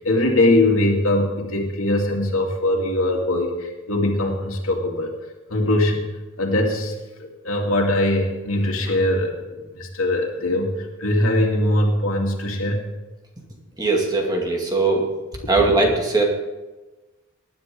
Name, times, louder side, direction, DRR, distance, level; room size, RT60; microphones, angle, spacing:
voice 1, 0.0-5.1 5.5-6.0 6.4-10.7 11.0-12.8, left 1 dB, 90° left, 1 dB, 2.4 m, -21 dB
voice 2, 13.8-15.0 15.5-16.2, right 3 dB, 20° right, 0 dB, 2.2 m, -20 dB
19.0 x 10.5 x 3.8 m, 1.1 s
head